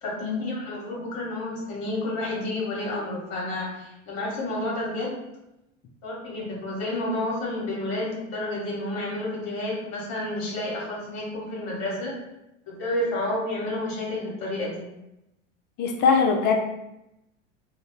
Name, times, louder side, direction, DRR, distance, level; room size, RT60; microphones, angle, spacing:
voice 1, 0.0-5.2 6.0-12.2 12.7-14.9, left 1 dB, 45° left, -3 dB, 1.2 m, -30 dB
voice 2, 15.8-16.6, left 5 dB, 30° left, 2 dB, 0.4 m, -21 dB
2.5 x 2.1 x 2.9 m, 0.89 s
figure-of-eight pair, 85°, 38 cm